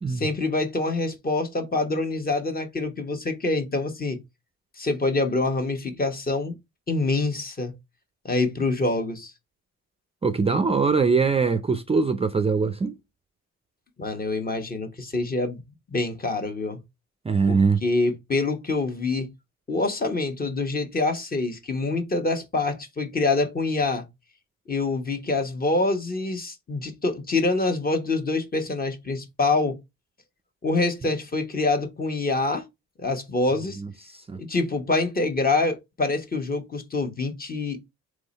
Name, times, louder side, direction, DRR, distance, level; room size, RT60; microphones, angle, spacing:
voice 1, 0.1-4.2 4.8-6.5 6.9-7.7 8.2-9.3 14.0-15.6 15.9-16.8 17.5-19.3 19.7-24.0 24.7-29.8 30.6-32.6 33.0-33.8 34.4-37.9, left 3 dB, 30° left, 1.2 m, -26 dB
voice 2, 10.2-13.0 17.2-17.8 33.7-34.4, right 4 dB, 20° right, 0.4 m, -22 dB
3.7 x 3.1 x 4.0 m
cardioid pair, 90°, 30 cm